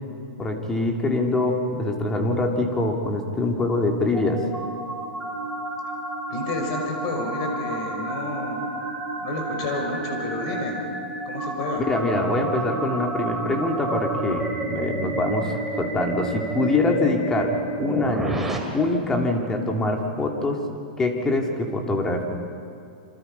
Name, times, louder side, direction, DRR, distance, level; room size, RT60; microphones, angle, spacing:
voice 1, 0.4-4.4 11.9-17.5 17.8-18.4 18.7-20.6 21.0-22.2, left 2 dB, 10° left, 2 dB, 2.6 m, -24 dB
sound 1, 3.5-18.6, right 2 dB, 5° right, 2.6 m, -31 dB
voice 2, 6.3-8.6 9.2-10.7 11.2-11.8, left 2 dB, 45° left, 2 dB, 5.6 m, -30 dB
28.0 x 26.0 x 5.6 m, 2.5 s
hypercardioid pair, 155°, 5 cm